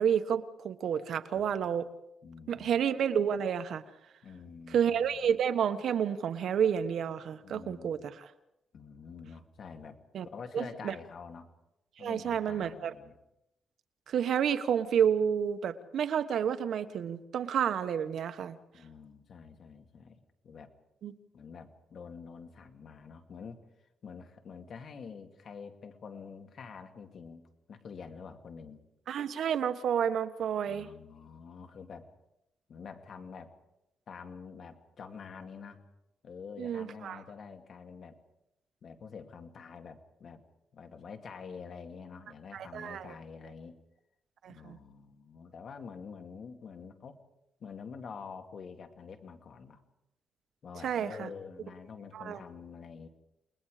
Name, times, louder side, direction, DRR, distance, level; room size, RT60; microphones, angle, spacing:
voice 1, 0.0-1.9 2.5-3.8 4.7-8.3 10.1-10.3 10.5-10.9 12.0-12.9 14.1-18.6 21.0-21.1 29.1-30.9 36.6-37.2 42.5-43.1 44.4-44.8 50.8-51.3 52.1-52.4, right 8 dB, 75° right, 9 dB, 1.2 m, -30 dB
voice 2, 1.3-1.7 2.2-2.8 4.2-5.2 7.4-7.9 8.7-10.0 10.3-11.5 12.0-13.2 18.7-20.7 21.3-23.6 24.0-27.4 27.7-28.8 30.7-32.1 32.7-33.5 34.1-35.9 36.2-38.2 38.8-40.4 40.7-43.8 44.5-47.2 47.6-49.8 50.6-53.1, left 5 dB, 60° left, 5 dB, 2.2 m, -47 dB
29.5 x 20.5 x 5.0 m, 0.86 s
cardioid pair, 120°, 0 cm